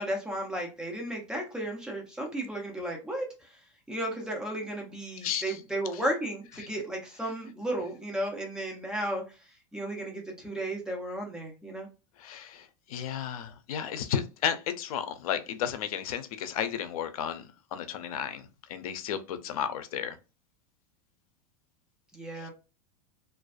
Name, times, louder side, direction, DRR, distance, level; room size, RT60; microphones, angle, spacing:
voice 1, 0.0-3.5 3.9-9.2 9.7-11.9 22.1-22.5, right 1 dB, 5° right, 0.5 m, -34 dB
voice 2, 5.2-5.6 12.2-17.4 17.7-20.2, left 9 dB, 90° left, 0.5 m, -33 dB
2.4 x 2.2 x 2.4 m
supercardioid pair, 155°, 18 cm